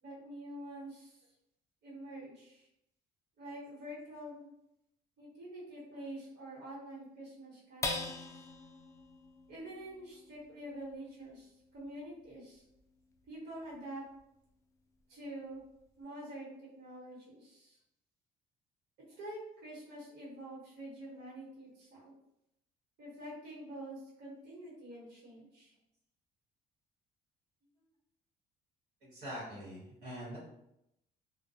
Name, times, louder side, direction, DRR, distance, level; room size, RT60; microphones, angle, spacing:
voice 1, 0.0-1.3 1.8-2.7 3.4-4.5 5.2-8.4 9.5-12.6 13.3-14.0 15.1-15.6 16.0-17.8 19.2-22.1 23.0-25.7, right 1 dB, 70° right, -6 dB, 1.2 m, -47 dB
sound 1, 7.8-14.5 15.0-15.1 15.5-16.0, left 3 dB, 15° left, 0.3 m, -45 dB
voice 2, 29.0-30.4, equal, 90° right, -8 dB, 1.0 m, -44 dB
2.2 x 2.1 x 2.6 m, 0.81 s
cardioid pair, 110°, 17 cm